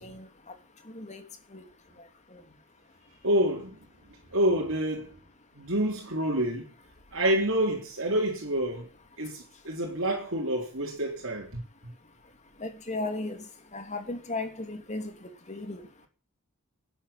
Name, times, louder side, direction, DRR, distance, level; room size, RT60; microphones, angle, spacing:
voice 1, 3.2-3.8 4.3-5.2 5.6-6.7 7.1-8.9 9.2-11.6, right 1 dB, 60° right, 3.9 m, -28 dB
voice 2, 12.6-13.4 13.7-15.1 15.5-15.8, left 2 dB, 30° left, 2.8 m, -35 dB
11.5 x 10.0 x 10.0 m
head